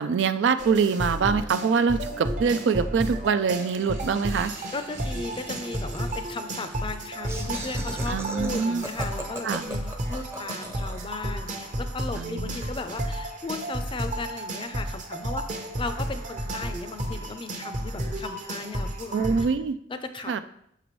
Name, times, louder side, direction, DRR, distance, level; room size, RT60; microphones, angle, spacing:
voice 1, 0.0-4.5 8.1-8.8 9.4-9.6 12.2-12.5 19.1-19.8 20.3-20.4, right 5 dB, 70° right, 11 dB, 0.3 m, -24 dB
sound 1, 0.6-19.5, right 1 dB, 45° right, 0.8 m, -32 dB
Laughter, 3.6-11.1, right 1 dB, 15° right, 0.6 m, -40 dB
voice 2, 4.7-15.5 15.8-19.5 19.9-20.4, left 3 dB, 30° left, 9 dB, 0.5 m, -36 dB
6.6 x 5.9 x 3.1 m, 0.71 s
head